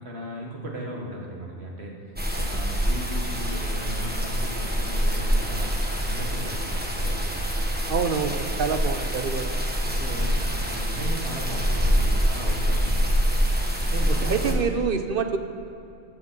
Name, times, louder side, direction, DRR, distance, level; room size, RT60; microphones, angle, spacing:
voice 1, 0.0-5.8 6.0-7.3 9.8-13.2 13.8-14.6, right 1 dB, 75° right, -1 dB, 2.0 m, -36 dB
sound 1, 2.2-14.5, equal, 10° right, 1.1 m, -25 dB
voice 2, 7.9-9.5 14.3-15.4, right 5 dB, 60° right, 7 dB, 0.8 m, -26 dB
14.5 x 5.2 x 6.9 m, 2.7 s
omnidirectional pair, 1.1 m